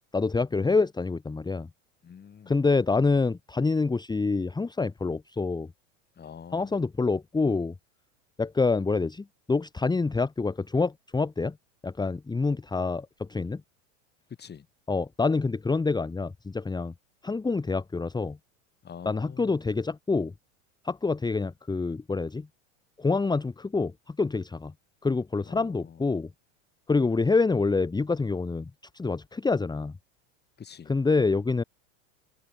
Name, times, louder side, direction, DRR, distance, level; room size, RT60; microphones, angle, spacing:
voice 1, 0.1-1.7 2.5-5.7 6.5-7.7 8.4-11.6 11.8-13.6 14.9-16.9 17.2-18.4 19.1-20.3 20.8-22.5 23.0-24.7 25.0-26.3 26.9-29.9 30.9-31.6, left 4 dB, 10° left, 1.8 m, -26 dB
voice 2, 2.0-2.6 6.2-6.9 14.4-14.7 18.8-19.6 25.4-26.1 30.6-30.9, left 7 dB, 25° left, 6.3 m, -46 dB
hypercardioid pair, 105°, 38 cm